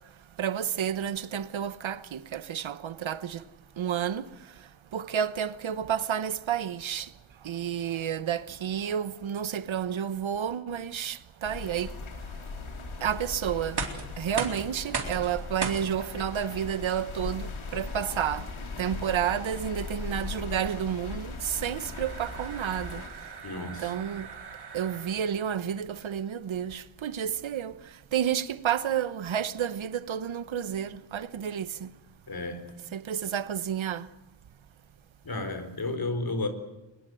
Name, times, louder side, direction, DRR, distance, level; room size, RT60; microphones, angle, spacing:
voice 1, 0.4-3.4 3.8-4.2 4.9-7.1 7.4-11.9 13.0-13.8 14.2-18.5 18.8-23.0 23.8-24.3 24.7-27.7 28.1-31.9 32.9-34.1, right 9 dB, 75° right, 1.1 m, -30 dB
sound 1, 11.4-23.1, left 4 dB, 85° left, 3.5 m, -39 dB
sound 2, 13.6-25.5, right 5 dB, 55° right, 3.9 m, -40 dB
voice 2, 23.4-23.9 32.3-32.7 35.2-36.5, left 2 dB, 50° left, 4.2 m, -32 dB
23.5 x 21.5 x 7.8 m
wide cardioid pair, 95°, 47 cm